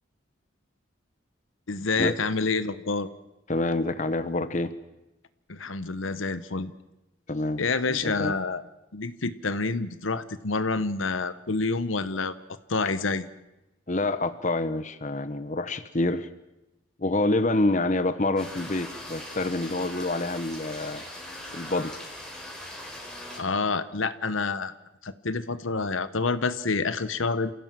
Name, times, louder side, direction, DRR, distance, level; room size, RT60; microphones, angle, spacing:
voice 1, 1.7-3.1 5.5-6.7 7.6-8.6 8.9-12.3 12.7-13.3 23.4-24.7 25.0-27.5, left 4 dB, 85° left, 13 dB, 1.1 m, -28 dB
voice 2, 3.5-4.7 7.3-8.3 13.9-16.3 17.0-21.0 21.5-21.9, left 2 dB, 40° left, 11 dB, 1.0 m, -27 dB
sound 1, 18.4-23.4, left 1 dB, 5° left, 4.0 m, -40 dB
29.0 x 16.0 x 7.6 m, 0.96 s
head